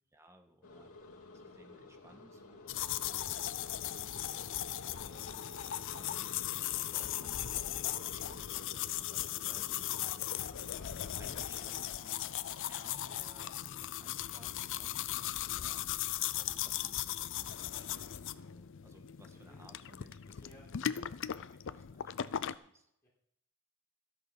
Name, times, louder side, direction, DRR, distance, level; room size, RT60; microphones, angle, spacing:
voice 1, 0.1-5.4 5.9-10.2 10.8-22.8, equal, 15° right, 5 dB, 1.6 m, -60 dB
sound 1, 0.6-11.9, left 2 dB, 90° left, 2.5 m, -52 dB
sound 2, 2.7-22.5, left 11 dB, 60° left, 0.5 m, -38 dB
voice 2, 20.4-21.1 23.0-23.1, left 1 dB, 15° left, -6 dB, 4.3 m, -59 dB
13.5 x 8.6 x 6.0 m, 0.74 s
head